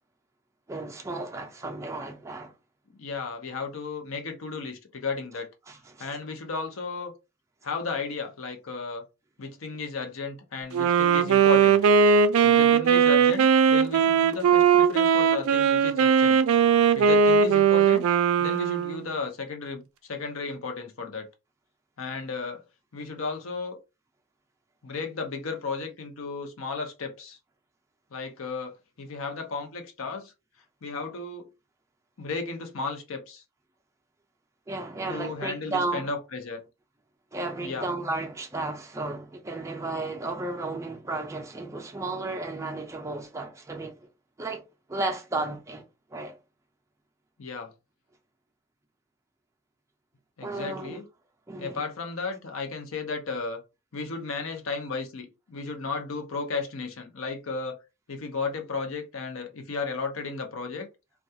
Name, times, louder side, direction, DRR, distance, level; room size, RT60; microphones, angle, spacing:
voice 1, 0.7-2.5 5.7-6.2 34.7-36.1 37.3-44.1 44.4-44.6 44.9-45.8 46.1-46.4 50.4-51.0 51.5-51.8, right 2 dB, 15° right, 0.4 m, -33 dB
voice 2, 3.0-5.5 6.0-7.1 7.6-9.0 9.4-11.8 12.4-16.4 16.9-18.0 18.4-19.8 20.1-21.3 22.0-22.6 22.9-23.8 24.8-27.4 28.1-30.3 30.8-31.5 32.2-33.4 35.1-36.6 37.6-37.9 47.4-47.7 50.4-51.0 51.6-53.6 53.9-57.8 58.1-60.9, left 4 dB, 80° left, 0.7 m, -34 dB
Wind instrument woodwind instrument, 10.7-19.1, right 6 dB, 90° right, 0.3 m, -19 dB
2.3 x 2.2 x 2.7 m
head